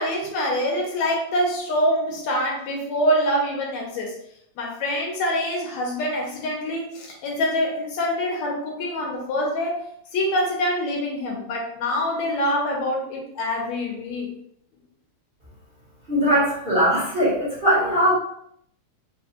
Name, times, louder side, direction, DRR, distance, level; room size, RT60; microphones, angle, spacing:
voice 1, 0.0-4.2 4.6-9.8 10.1-14.3, equal, 75° left, -1 dB, 1.9 m, -25 dB
voice 2, 16.1-18.1, equal, 45° right, -10 dB, 0.7 m, -20 dB
4.6 x 2.3 x 2.8 m, 0.71 s
omnidirectional pair, 3.3 m